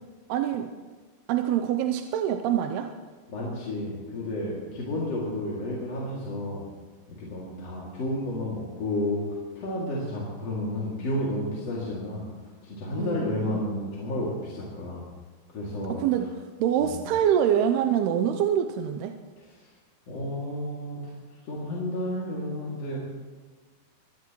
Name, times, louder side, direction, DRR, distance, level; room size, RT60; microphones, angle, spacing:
voice 1, 0.3-0.7 1.3-2.9 13.0-13.6 15.9-16.3 16.6-19.1, right 9 dB, 85° right, 7 dB, 2.7 m, -25 dB
voice 2, 3.3-6.6 7.2-15.1 15.5-16.0 16.8-17.0 19.6-19.7 20.1-21.1 21.4-23.0, left 1 dB, 45° left, -6 dB, 3.2 m, -31 dB
24.0 x 17.5 x 3.1 m, 1.4 s
omnidirectional pair, 4.5 m